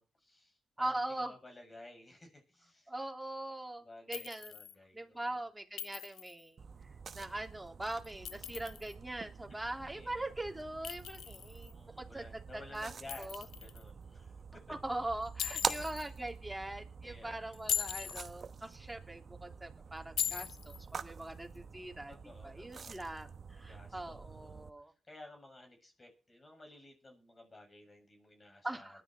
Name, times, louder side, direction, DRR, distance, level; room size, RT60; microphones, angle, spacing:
voice 1, 0.0-2.9 3.8-5.4 9.5-9.6 9.9-10.3 11.7-14.7 17.0-17.4 22.1-23.0 23.6-29.0, left 2 dB, 35° left, 4 dB, 7.0 m, -55 dB
voice 2, 0.8-1.4 2.9-4.6 4.9-6.6 7.1-12.2 12.5-12.9 13.2-13.4 14.7-22.1 22.4-24.9 28.6-29.0, right 1 dB, 15° right, 3 dB, 3.2 m, -41 dB
Chink clink, 4.1-4.7 5.8-6.4 8.0-8.9 10.8-11.7 13.1-13.8 15.4-16.1 17.5-18.3 20.2-20.8, left 10 dB, 80° left, 0.7 m, -39 dB
sound 1, 6.6-24.7, right 5 dB, 55° right, 1.0 m, -46 dB
19.5 x 11.0 x 4.5 m, 0.36 s
supercardioid pair, 50°, 0 cm